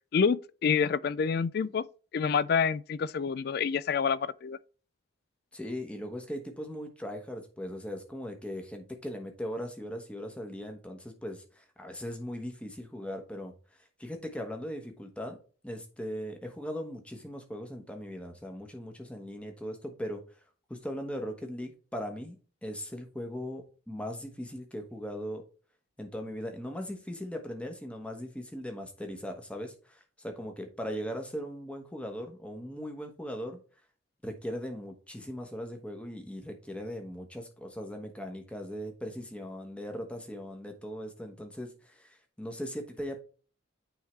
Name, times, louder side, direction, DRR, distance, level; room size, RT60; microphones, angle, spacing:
voice 1, 0.1-1.8 2.1-4.6, left 6 dB, 50° left, 0.3 m, -27 dB
voice 2, 5.5-13.5 14.0-15.4 15.6-20.2 20.7-22.4 22.6-25.4 26.0-33.6 34.2-43.2, equal, 5° left, 1.1 m, -39 dB
9.1 x 3.6 x 3.2 m
head